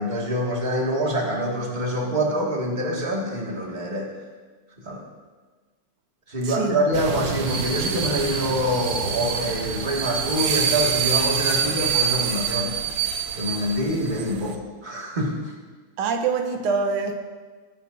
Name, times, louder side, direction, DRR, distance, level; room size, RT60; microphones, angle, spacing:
voice 1, 0.0-4.1 4.8-5.0 6.3-12.7 13.3-15.4, equal, 20° right, -3 dB, 2.0 m, -25 dB
voice 2, 6.4-6.8 16.0-17.2, right 5 dB, 90° right, 5 dB, 1.9 m, -25 dB
sound 1, 6.9-14.6, right 7 dB, 65° right, 1.5 m, -26 dB
19.5 x 11.0 x 2.7 m, 1.4 s
omnidirectional pair, 2.3 m